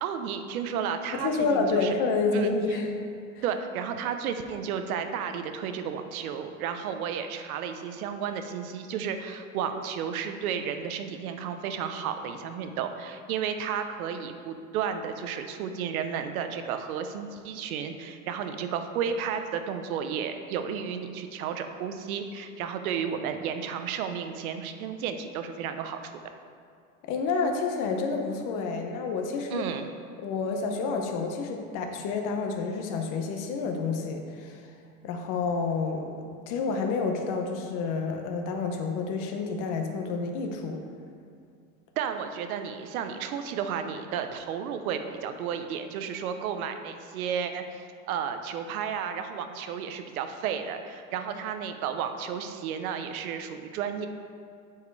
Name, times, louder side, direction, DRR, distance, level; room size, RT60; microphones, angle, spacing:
voice 1, 0.0-2.0 2.3-2.5 3.4-26.0 29.5-29.9 42.0-54.1, right 7 dB, 85° right, 8 dB, 0.8 m, -32 dB
voice 2, 1.1-2.9 3.3-3.4 27.0-29.7 30.2-34.6 35.0-36.1 36.5-40.8, left 4 dB, 45° left, 3 dB, 1.1 m, -29 dB
8.6 x 4.8 x 4.7 m, 2.3 s
supercardioid pair, 135°, 42 cm